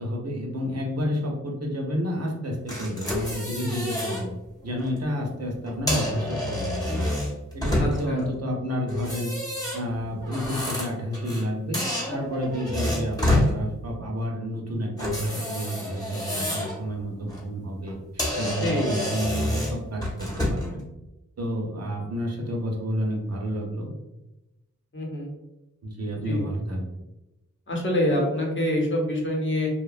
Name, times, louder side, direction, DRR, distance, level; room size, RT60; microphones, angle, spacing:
voice 1, 0.0-4.3 4.6-7.2 7.5-9.3 9.7-11.8 12.1-20.9 21.4-23.9 25.8-26.8, equal, 55° right, 0 dB, 0.7 m, -30 dB
sound 1, 2.7-4.2 4.7-4.9 5.7-8.2 8.9-11.5 11.7-13.5 15.0-16.8 17.2-17.4 17.9-18.0 18.2-20.7, left 1 dB, 10° left, 0.8 m, -28 dB
voice 2, 7.8-8.3 18.6-18.9 24.9-25.3 26.3-26.5 27.7-29.7, left 1 dB, 40° left, -2 dB, 0.8 m, -26 dB
2.7 x 2.1 x 2.4 m, 0.96 s
wide cardioid pair, 70°, 30 cm